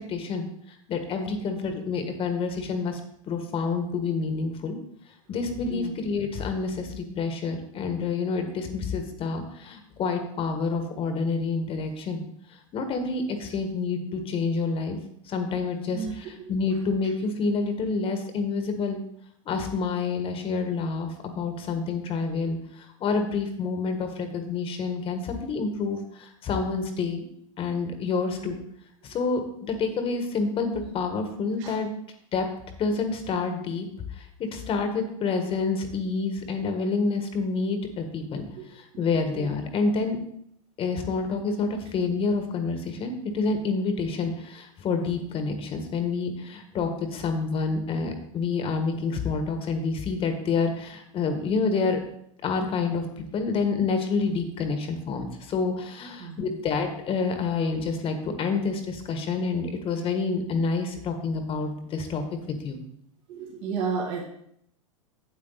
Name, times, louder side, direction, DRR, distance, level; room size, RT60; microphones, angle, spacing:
voice 1, 0.1-3.0 3.3-4.8 5.3-12.2 12.7-15.0 15.3-19.0 19.4-27.2 27.6-28.6 29.0-31.9 32.3-32.4 32.8-33.9 34.2-38.4 38.7-40.2 40.8-52.0 52.4-62.8, left 4 dB, 30° left, 6 dB, 1.5 m, -28 dB
voice 2, 15.9-16.5 28.3-28.4 31.6-31.7 38.6-38.7 39.4-39.5 56.2-56.6 63.3-64.2, right 5 dB, 55° right, -2 dB, 2.2 m, -33 dB
8.3 x 8.3 x 4.0 m, 0.70 s
hypercardioid pair, 105°, 18 cm